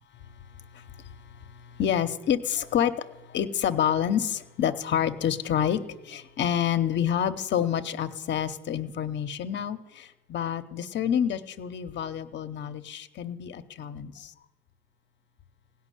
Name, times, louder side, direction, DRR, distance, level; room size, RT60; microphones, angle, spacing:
voice 1, 1.8-2.9 3.3-5.8 6.1-10.0 10.3-14.1, left 9 dB, 65° left, 10 dB, 0.8 m, -27 dB
16.5 x 5.9 x 9.9 m, 1.1 s
cardioid pair, 90°, 20 cm